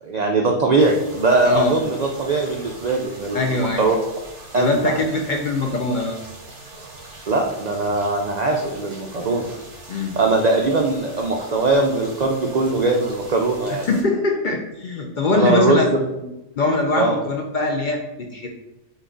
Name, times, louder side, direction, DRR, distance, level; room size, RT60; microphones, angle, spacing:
voice 1, 0.0-4.0 4.5-5.0 7.3-9.5 10.2-13.8 15.3-16.0 17.0-17.2, right 3 dB, 85° right, 1 dB, 0.3 m, -20 dB
sound 1, 0.8-14.0, right 2 dB, 65° right, 1.6 m, -42 dB
voice 2, 1.4-1.8 3.3-3.9 4.5-6.2 9.9-10.1 13.7-15.9 16.2-18.5, left 3 dB, 60° left, 1 dB, 0.5 m, -22 dB
5.4 x 2.4 x 3.8 m, 0.94 s
omnidirectional pair, 1.3 m